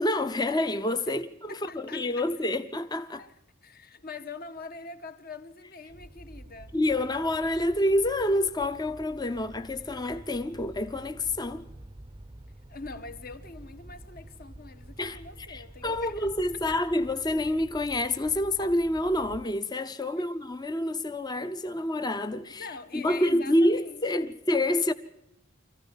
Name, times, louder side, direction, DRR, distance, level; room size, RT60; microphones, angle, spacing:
voice 1, 0.0-3.2 6.7-11.7 15.0-15.2 15.5-22.7 22.9-24.9, left 1 dB, 20° left, 0.7 m, -27 dB
voice 2, 1.5-2.5 3.2-3.3 3.6-6.7 12.7-16.3 16.7-16.8 20.1-20.3 22.6-24.3, left 4 dB, 45° left, 1.3 m, -44 dB
sound 1, 5.9-19.5, right 1 dB, 20° right, 0.7 m, -48 dB
25.0 x 15.0 x 7.2 m
head